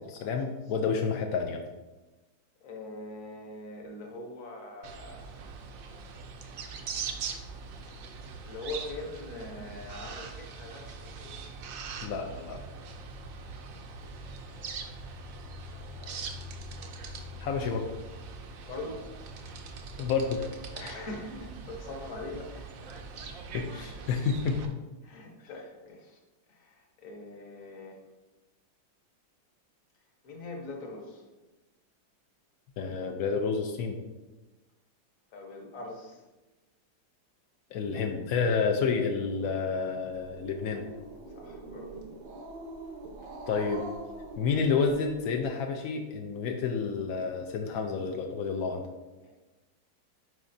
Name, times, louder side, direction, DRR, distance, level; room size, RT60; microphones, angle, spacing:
voice 1, 0.1-1.6 12.0-12.6 17.4-17.9 20.0-20.4 23.5-24.8 32.8-34.0 37.7-40.8 43.5-43.8 44.4-48.9, left 5 dB, 75° left, 3 dB, 0.8 m, -29 dB
voice 2, 2.6-5.3 8.0-8.2 8.4-11.5 15.7-16.3 18.6-19.0 19.9-20.1 20.7-23.0 23.7-24.2 25.0-26.2 26.5-28.0 30.2-31.2 35.3-36.2 41.3-41.9 43.2-43.3 49.2-49.3, left 2 dB, 50° left, 2 dB, 1.2 m, -43 dB
sound 1, 4.8-24.7, right 4 dB, 70° right, 0.8 m, -42 dB
Growling, 40.1-45.4, right 2 dB, 90° right, 1.7 m, -44 dB
9.7 x 4.8 x 2.6 m, 1.1 s
omnidirectional pair, 2.1 m